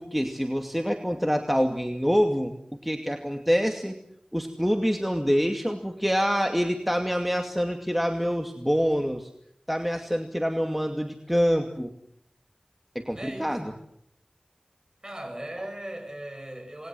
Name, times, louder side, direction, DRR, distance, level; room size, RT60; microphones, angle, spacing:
voice 1, 0.0-4.0 4.3-9.3 9.7-11.9 12.9-13.7, equal, 5° right, 4 dB, 2.4 m, -26 dB
voice 2, 13.1-13.8 15.0-16.9, right 1 dB, 30° right, 5 dB, 7.7 m, -38 dB
28.0 x 21.0 x 7.8 m, 0.71 s
wide cardioid pair, 45°, 2 cm